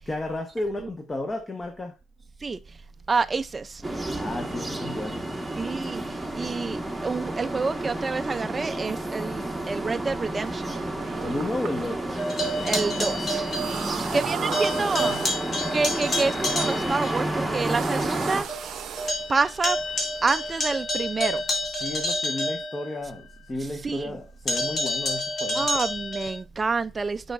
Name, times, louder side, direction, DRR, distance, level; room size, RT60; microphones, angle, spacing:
voice 1, 0.1-1.9 4.1-5.3 11.2-12.1 13.8-15.2 21.7-25.7, left 1 dB, 25° left, 1.0 m, -33 dB
voice 2, 3.1-3.8 5.6-10.7 12.6-13.5 14.1-15.2 15.7-18.5 19.3-19.8 20.2-21.4 23.8-24.2 25.5-27.3, right 4 dB, 25° right, 0.3 m, -28 dB
sound 1, 3.8-18.4, right 1 dB, 5° right, 1.3 m, -31 dB
sound 2, 10.4-20.6, right 9 dB, 75° right, 0.6 m, -38 dB
sound 3, 12.2-14.2 14.5-17.2 17.6-17.7 18.1-18.2 18.5-23.3 24.5-26.4, left 1 dB, 45° left, 2.2 m, -29 dB
9.0 x 5.5 x 2.5 m
cardioid pair, 115°, 0 cm